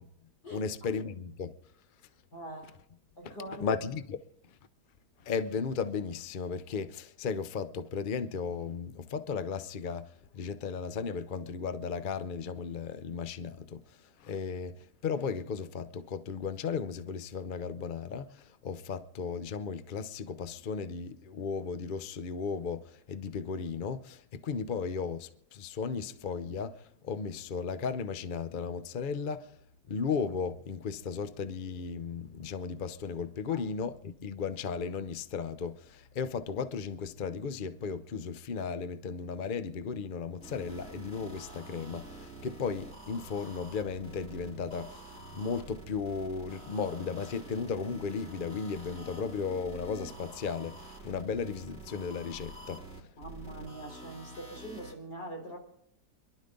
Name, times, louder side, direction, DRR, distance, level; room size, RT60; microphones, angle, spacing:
voice 1, 0.5-1.5 3.2-3.3 3.6-4.2 5.2-10.1 10.3-13.8 14.2-14.8 15.0-29.5 29.9-52.8, left 5 dB, 50° left, 0.6 m, -35 dB
voice 2, 2.3-2.8 3.2-3.7 33.5-33.7 53.2-55.6, right 1 dB, 70° left, 4.6 m, -43 dB
sound 1, 40.4-54.9, right 2 dB, 5° left, 3.4 m, -47 dB
26.5 x 12.0 x 3.9 m
omnidirectional pair, 1.9 m